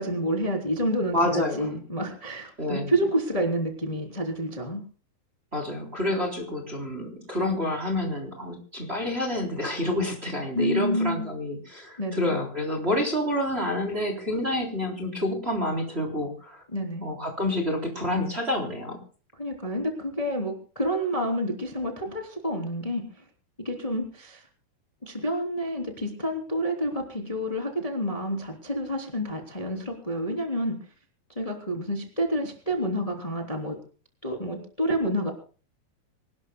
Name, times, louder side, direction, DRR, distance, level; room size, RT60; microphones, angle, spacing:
voice 1, 0.0-4.8 10.5-11.3 12.0-12.4 16.7-17.0 19.4-23.2 23.6-24.4 25.0-30.8 31.3-33.8 34.2-35.3, equal, 10° left, 3 dB, 2.8 m, -29 dB
voice 2, 1.1-1.7 2.6-2.9 5.5-16.6 17.0-19.0, left 1 dB, 15° right, 3 dB, 3.4 m, -28 dB
26.0 x 19.5 x 2.3 m, 0.38 s
omnidirectional pair, 4.1 m